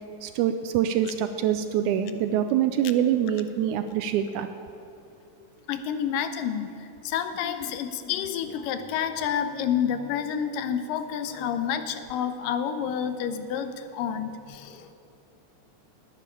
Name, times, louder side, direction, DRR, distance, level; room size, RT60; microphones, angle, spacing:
voice 1, 0.2-4.5, right 10 dB, 80° right, 9 dB, 1.8 m, -25 dB
voice 2, 5.7-6.7 7.0-14.9, left 8 dB, 90° left, 9 dB, 2.4 m, -29 dB
11.0 x 8.8 x 9.9 m, 2.7 s
omnidirectional pair, 3.8 m